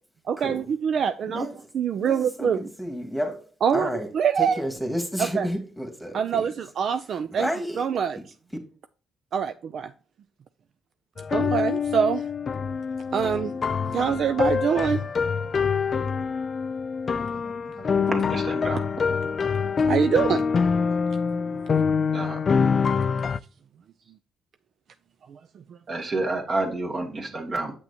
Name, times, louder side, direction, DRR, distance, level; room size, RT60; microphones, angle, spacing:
voice 1, 0.3-1.5 1.7-2.6 3.6-4.6 5.2-5.5 6.1-7.5 7.8-8.2 9.3-9.9 11.3-12.2 13.1-13.5 13.9-15.0 19.9-20.8 21.3-21.4 22.1-22.2 25.3-25.4, right 7 dB, 60° right, 0.4 m, -24 dB
voice 2, 1.3-1.7 2.0-3.4 3.7-4.1 4.4-6.4 7.3-7.8, equal, ahead, 1.7 m, -31 dB
sound 1, 11.2-23.4, left 5 dB, 40° left, 0.3 m, -25 dB
voice 3, 17.3-18.8 22.1-22.4 25.9-27.7, right 2 dB, 45° right, 2.1 m, -30 dB
7.8 x 5.9 x 2.8 m
cardioid pair, 90°, 0 cm